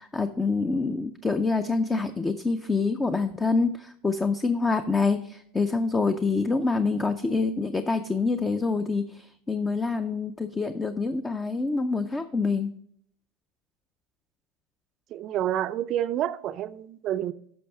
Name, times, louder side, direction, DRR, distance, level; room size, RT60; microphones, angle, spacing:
voice 1, 0.0-12.7, left 4 dB, 15° left, 9 dB, 0.5 m, -26 dB
voice 2, 15.1-17.3, right 11 dB, 45° right, 11 dB, 0.4 m, -28 dB
11.5 x 6.0 x 3.4 m, 0.66 s
supercardioid pair, 120°, 0 cm